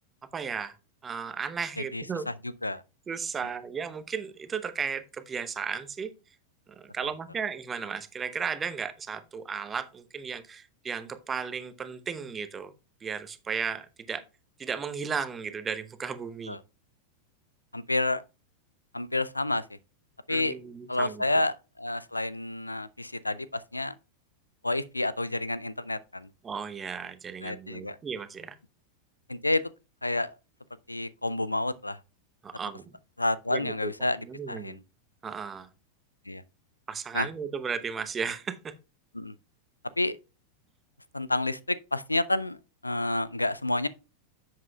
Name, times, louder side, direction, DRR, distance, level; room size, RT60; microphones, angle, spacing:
voice 1, 0.3-0.7 1.0-2.3 3.1-6.1 6.9-12.7 13.0-14.2 14.6-16.6 20.3-21.2 26.4-28.5 32.4-33.0 33.5-33.9 34.3-34.8 35.2-35.7 36.9-38.7, right 6 dB, 20° right, 0.8 m, -35 dB
voice 2, 1.8-2.8 16.5-16.6 17.7-18.2 18.9-19.8 20.3-20.6 20.9-23.9 24.6-26.3 27.4-28.0 29.3-29.6 30.0-30.4 30.9-32.0 33.2-34.8 36.3-36.4 37.1-37.3 39.1-39.4 40.0-40.2 41.1-43.9, left 2 dB, 85° left, 0.4 m, -29 dB
10.5 x 7.7 x 2.3 m
figure-of-eight pair, 90°, 0 cm